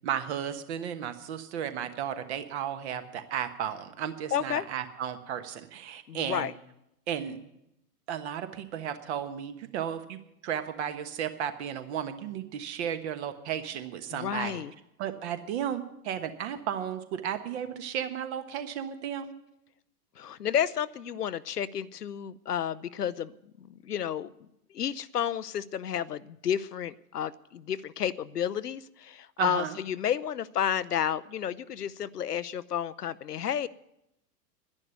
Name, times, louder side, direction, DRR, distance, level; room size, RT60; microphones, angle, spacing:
voice 1, 0.0-6.5 7.1-7.4 8.1-14.6 15.0-19.3 29.4-29.8, right 9 dB, 45° right, 9 dB, 1.3 m, -34 dB
voice 2, 4.3-4.7 6.1-6.5 14.1-14.7 20.2-23.3 23.6-24.3 24.7-33.7, left 9 dB, 75° left, 16 dB, 0.7 m, -31 dB
11.0 x 10.5 x 9.3 m, 0.84 s
figure-of-eight pair, 100°, 48 cm